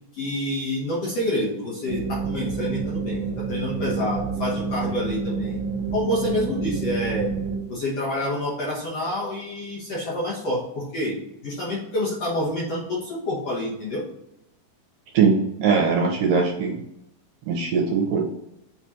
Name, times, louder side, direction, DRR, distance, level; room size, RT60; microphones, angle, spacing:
voice 1, 0.1-5.6 5.9-7.3 7.7-14.0, left 1 dB, 55° left, -6 dB, 1.9 m, -28 dB
sound 1, 1.9-7.6, right 5 dB, 45° right, 2.0 m, -28 dB
voice 2, 15.1-16.8 17.5-18.2, right 5 dB, 70° right, 0 dB, 2.4 m, -21 dB
7.3 x 3.3 x 4.3 m, 0.80 s
omnidirectional pair, 4.4 m